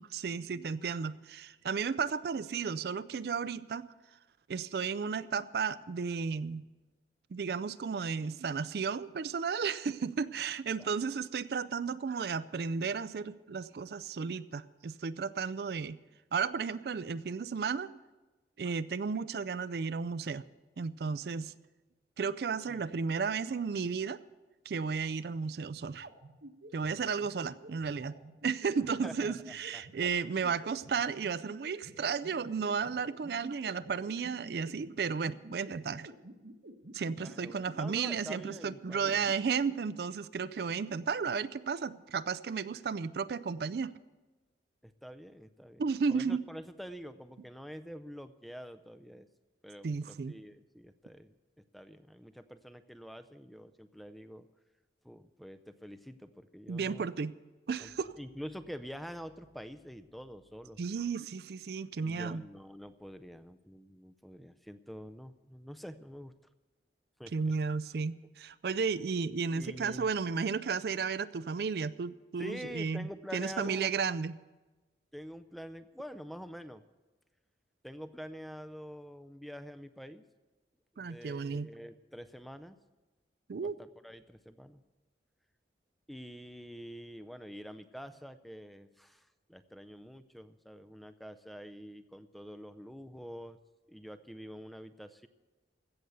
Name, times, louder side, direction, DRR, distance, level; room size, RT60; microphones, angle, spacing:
voice 1, 0.0-3.9 4.5-6.7 7.3-16.0 16.3-17.9 18.6-20.4 20.8-21.5 22.2-24.2 24.7-26.1 26.7-28.2 28.4-36.1 36.9-43.9 45.8-46.4 49.8-50.3 56.7-57.3 57.7-58.1 60.8-62.4 67.3-74.4 81.0-81.7 83.5-83.8, right 5 dB, 60° right, 15 dB, 0.4 m, -33 dB
sound 1, 25.8-39.7, right 1 dB, 75° right, 1.1 m, -49 dB
voice 2, 29.0-29.8 37.2-39.3 44.8-49.3 49.6-51.3 51.7-54.5 55.0-57.1 57.8-60.8 62.0-66.3 67.2-67.3 69.5-70.1 72.4-74.0 75.1-76.8 77.8-80.2 80.9-82.8 83.6-84.8 86.1-93.6 93.9-95.3, equal, ahead, 10 dB, 0.4 m, -46 dB
16.0 x 6.8 x 8.0 m, 1.2 s
head